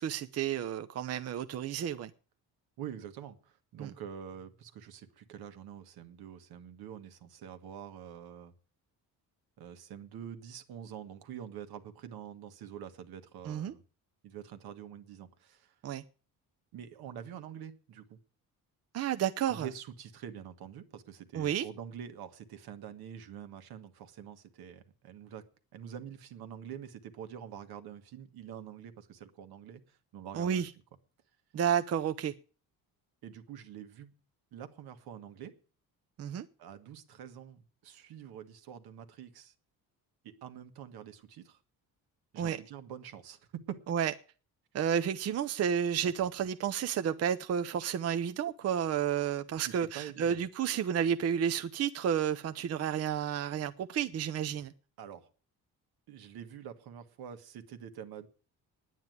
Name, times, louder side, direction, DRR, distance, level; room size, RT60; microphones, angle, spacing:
voice 1, 0.0-2.1 3.8-3.9 13.5-13.7 15.8-16.0 18.9-19.7 21.3-21.7 30.3-30.7 31.5-32.3 36.2-36.4 42.4-42.6 43.9-44.1 44.7-54.7, right 8 dB, 40° right, 0.6 m, -31 dB
voice 2, 2.8-8.5 9.6-13.8 14.2-15.7 16.7-18.2 19.5-25.4 25.7-30.6 33.2-34.1 34.5-35.5 36.6-39.5 40.2-41.6 42.3-43.8 49.7-50.4 55.0-55.3 56.1-58.3, right 9 dB, 80° right, 1.6 m, -46 dB
9.8 x 9.0 x 9.2 m
cardioid pair, 140°, 37 cm